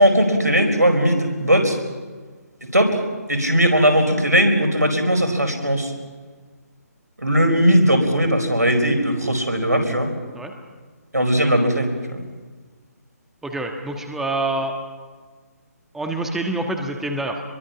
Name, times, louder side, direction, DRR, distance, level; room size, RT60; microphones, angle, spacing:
voice 1, 0.0-1.8 2.7-3.0 3.3-5.9 7.2-10.1 11.1-12.2, equal, 85° right, 5 dB, 4.9 m, -18 dB
voice 2, 13.4-14.7 15.9-17.4, right 2 dB, 5° right, 3 dB, 1.5 m, -26 dB
26.0 x 22.5 x 5.9 m, 1.4 s
figure-of-eight pair, 140°, 9 cm